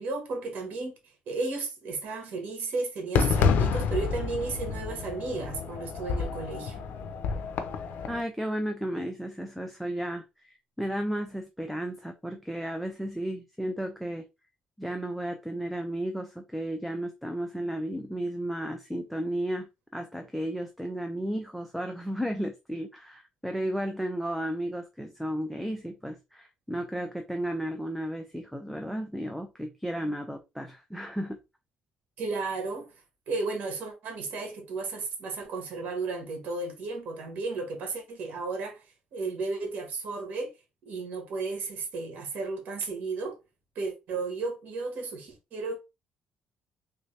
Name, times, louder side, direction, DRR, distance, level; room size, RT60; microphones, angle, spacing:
voice 1, 0.0-6.8 32.2-32.9 33.3-40.5 40.8-43.4 43.7-45.8, right 3 dB, 65° right, 1.2 m, -34 dB
Fireworks, 3.1-8.2, left 6 dB, 75° left, 0.5 m, -28 dB
voice 2, 8.1-14.3 14.8-31.4, right 1 dB, ahead, 0.4 m, -33 dB
3.3 x 2.7 x 3.2 m
cardioid pair, 125°, 3 cm